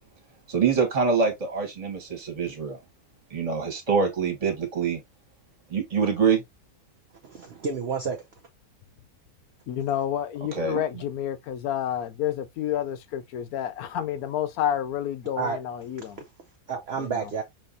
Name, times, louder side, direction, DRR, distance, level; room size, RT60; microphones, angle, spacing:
voice 1, 0.5-2.8 3.3-5.0 5.7-6.4 10.5-10.8, right 5 dB, 25° right, 1.3 m, -25 dB
voice 2, 7.2-8.2 10.7-11.0 15.4-15.6 16.7-17.4, right 5 dB, 55° right, 0.7 m, -30 dB
voice 3, 9.7-16.2 17.0-17.3, left 10 dB, 75° left, 1.0 m, -29 dB
5.4 x 3.0 x 2.6 m
omnidirectional pair, 1.7 m